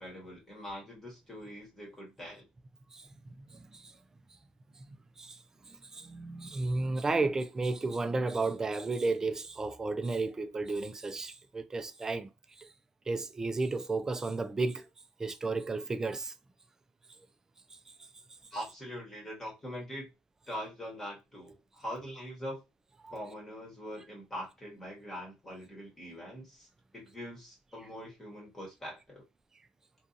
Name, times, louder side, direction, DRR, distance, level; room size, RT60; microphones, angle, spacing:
voice 1, 0.0-2.5 18.5-20.1 20.5-22.6 23.1-26.7 26.9-29.2, equal, 15° left, 1.2 m, -43 dB
voice 2, 2.9-3.9 4.8-4.9 5.2-5.4 5.7-12.3 12.6-12.7 13.1-14.9 15.2-16.3 23.0-23.2, right 3 dB, 20° right, 0.3 m, -33 dB
2.6 x 2.3 x 2.5 m
cardioid pair, 110°, 3 cm